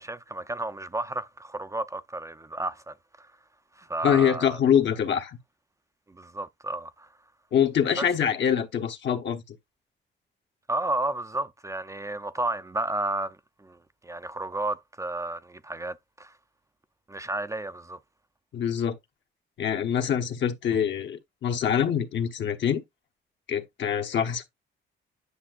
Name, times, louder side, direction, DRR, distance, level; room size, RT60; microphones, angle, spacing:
voice 1, 0.0-3.3 3.8-4.6 6.1-7.1 8.0-8.1 10.7-13.8 14.0-16.3 17.1-18.0, right 2 dB, 15° right, 0.5 m, -32 dB
voice 2, 4.0-5.4 7.5-9.6 18.5-19.0 19.6-22.8 23.5-24.5, left 8 dB, 65° left, 1.3 m, -25 dB
9.9 x 5.9 x 2.5 m
cardioid pair, 90°, 20 cm